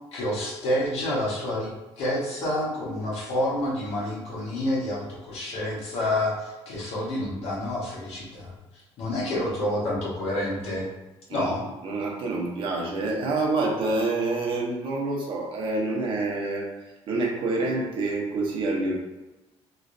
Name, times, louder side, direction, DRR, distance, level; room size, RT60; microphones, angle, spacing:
voice 1, 0.1-8.5 9.0-10.9 11.3-11.6, left 1 dB, 70° left, -5 dB, 1.3 m, -28 dB
voice 2, 11.8-16.7 17.1-18.9, right 2 dB, 50° right, -2 dB, 0.8 m, -27 dB
3.1 x 3.1 x 2.6 m, 1.1 s
cardioid pair, 140°, 11 cm